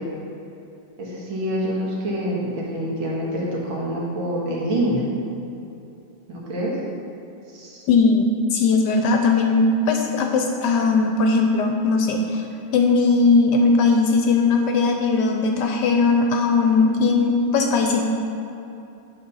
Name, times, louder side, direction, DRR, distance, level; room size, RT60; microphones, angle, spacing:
voice 1, 1.0-5.0 6.3-6.7 7.5-7.9, equal, 75° right, -5 dB, 2.3 m, -26 dB
voice 2, 7.9-12.4 12.7-18.0, left 4 dB, 70° left, 3 dB, 1.1 m, -19 dB
8.8 x 4.2 x 5.5 m, 2.8 s
omnidirectional pair, 2.2 m